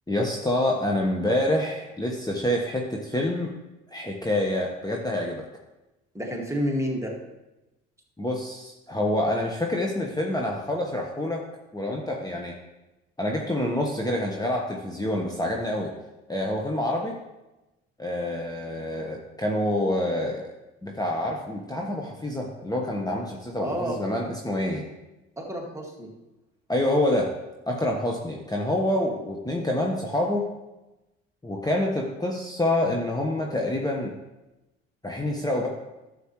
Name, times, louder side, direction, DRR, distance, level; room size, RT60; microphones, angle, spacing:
voice 1, 0.1-3.5 3.9-5.4 8.2-11.4 11.7-12.5 13.2-15.9 16.3-17.2 18.0-20.5 20.8-24.9 26.7-27.3 27.7-30.5 31.4-34.2 35.0-35.7, left 1 dB, 10° left, -1 dB, 1.3 m, -27 dB
voice 2, 6.1-7.2 23.6-24.0 25.4-26.1, equal, 10° right, -1 dB, 2.2 m, -29 dB
11.5 x 7.3 x 3.2 m, 1.0 s
hypercardioid pair, 55°, 33 cm